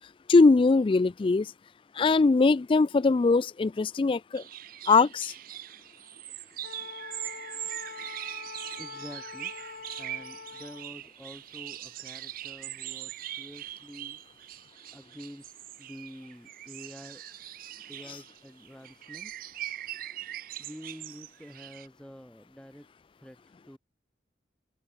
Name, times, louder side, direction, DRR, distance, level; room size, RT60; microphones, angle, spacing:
voice 1, 0.3-1.5 2.0-4.4 4.9-5.3, left 3 dB, 30° left, 0.3 m, -21 dB
sound 1, 4.3-21.9, right 13 dB, 50° right, 0.4 m, -41 dB
Wind instrument woodwind instrument, 6.6-10.9, left 5 dB, 55° left, 0.8 m, -44 dB
voice 2, 8.8-9.6 10.0-14.2 14.9-15.5 15.8-17.6 17.9-19.3 20.6-22.9 23.2-23.8, equal, 5° left, 1.0 m, -47 dB
head